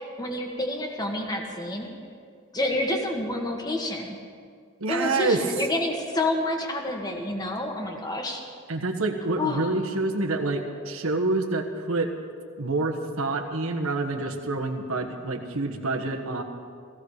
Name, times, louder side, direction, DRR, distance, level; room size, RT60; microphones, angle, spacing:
voice 1, 0.2-1.9 2.5-4.2 4.9-8.4 9.4-9.7, left 1 dB, 20° left, 2 dB, 1.7 m, -28 dB
voice 2, 4.8-5.4 8.7-12.1 12.6-16.4, right 3 dB, 90° right, 4 dB, 1.4 m, -27 dB
16.5 x 16.0 x 4.9 m, 2.1 s
head